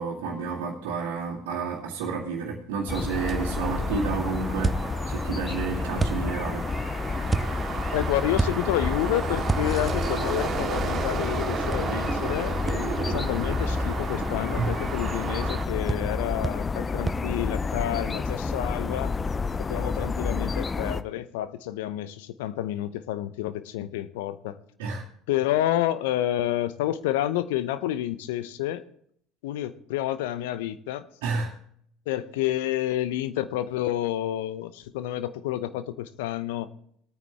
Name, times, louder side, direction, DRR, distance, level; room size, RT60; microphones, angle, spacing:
voice 1, 0.0-4.8 5.1-6.7 14.6-14.7 24.8-25.0 31.2-31.5, right 4 dB, 70° right, 2.2 m, -30 dB
sound 1, 2.9-21.0, left 4 dB, 25° left, 0.6 m, -30 dB
sound 2, 3.1-15.6, right 6 dB, 40° right, 2.2 m, -34 dB
sound 3, 4.6-5.3 6.0-6.6 7.3-7.8 8.4-9.0 9.5-10.1 11.7-11.8 12.7-12.8 15.9-16.2 16.4-16.8 17.1-17.3, right 3 dB, 15° right, 0.6 m, -29 dB
voice 2, 7.9-19.1 19.6-24.6 25.3-28.8 29.4-31.1 32.1-36.7, left 13 dB, 70° left, 0.7 m, -29 dB
19.5 x 9.3 x 3.5 m
hypercardioid pair, 70°, 0 cm